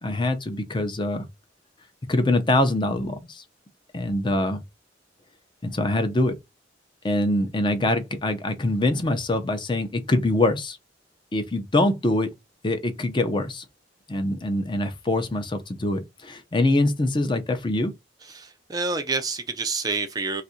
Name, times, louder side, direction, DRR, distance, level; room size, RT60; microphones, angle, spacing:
voice 1, 0.0-1.3 2.1-3.4 3.9-4.6 5.6-6.3 7.0-10.8 11.3-12.3 12.6-13.6 14.1-17.9, left 1 dB, 25° left, 0.6 m, -24 dB
voice 2, 18.3-20.4, right 4 dB, 20° right, 0.4 m, -28 dB
2.6 x 2.5 x 4.1 m
head